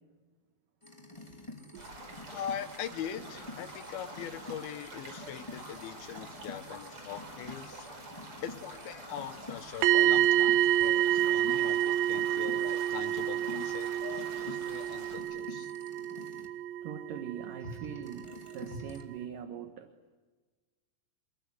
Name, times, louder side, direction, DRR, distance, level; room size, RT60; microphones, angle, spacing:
sound 1, 0.8-16.5 17.6-19.0, left 2 dB, 10° left, 1.8 m, -48 dB
sound 2, 1.8-15.2, right 1 dB, 30° right, 5.3 m, -47 dB
voice 1, 2.3-7.9 8.4-15.7, left 9 dB, 70° left, 11 dB, 2.6 m, -42 dB
sound 3, 9.8-17.7 18.0-18.2, right 12 dB, 80° right, 3.4 m, -28 dB
voice 2, 16.8-19.9, right 8 dB, 60° right, 7 dB, 2.5 m, -42 dB
28.0 x 22.0 x 9.7 m, 1.4 s
omnidirectional pair, 5.2 m